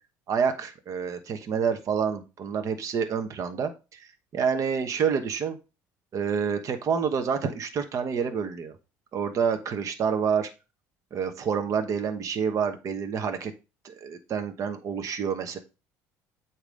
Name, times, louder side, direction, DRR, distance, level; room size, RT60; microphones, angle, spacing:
voice 1, 0.3-5.6 6.1-8.7 9.1-10.5 11.1-13.5 13.8-15.6, right 6 dB, 50° right, 7 dB, 1.0 m, -28 dB
8.2 x 3.0 x 5.2 m, 0.30 s
supercardioid pair, 80°, 7 cm